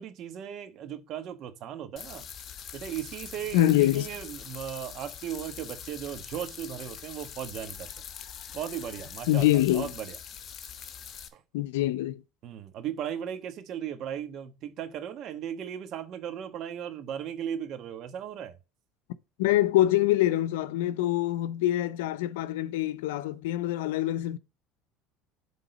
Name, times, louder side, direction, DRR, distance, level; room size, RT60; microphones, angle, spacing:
voice 1, 0.0-2.3 2.7-7.9 8.5-10.2 11.3-11.4 12.4-18.6, right 9 dB, 55° right, 1.2 m, -37 dB
sound 1, 2.0-11.3, left 8 dB, 45° left, 1.1 m, -43 dB
voice 2, 3.5-4.1 9.3-9.9 11.5-12.2 19.4-24.4, left 14 dB, 85° left, 0.5 m, -25 dB
7.9 x 3.7 x 5.0 m
supercardioid pair, 95°, 0 cm